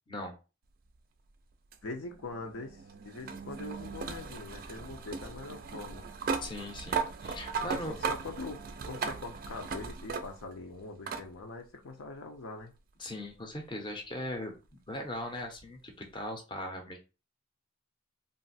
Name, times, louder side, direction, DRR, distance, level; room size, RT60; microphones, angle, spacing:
sound 1, 1.7-10.6 11.1-11.3 12.6-12.7 15.6-15.7, right 5 dB, 45° right, 0.3 m, -37 dB
voice 1, 1.8-6.0 7.5-12.7, left 3 dB, 80° left, 3 dB, 0.6 m, -43 dB
voice 2, 6.4-8.0 13.0-14.5 14.9-17.0, left 1 dB, 25° left, 3 dB, 0.6 m, -39 dB
2.5 x 2.0 x 3.9 m, 0.30 s
head